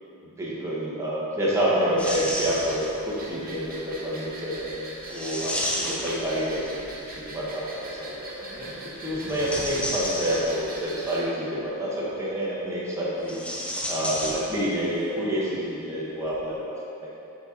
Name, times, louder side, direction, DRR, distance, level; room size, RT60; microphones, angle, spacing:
voice 1, 0.4-6.8 7.2-8.7 9.0-13.4 13.9-16.7 17.0-17.1, equal, 15° right, -7 dB, 1.4 m, -28 dB
sound 1, 2.0-3.1 5.1-6.9 9.1-10.9 13.2-14.9 15.2-15.3 16.2-16.4, left 1 dB, 5° left, 0.6 m, -32 dB
sound 2, 2.0-11.2, right 2 dB, 40° right, 1.0 m, -42 dB
7.8 x 4.3 x 4.0 m, 2.8 s
head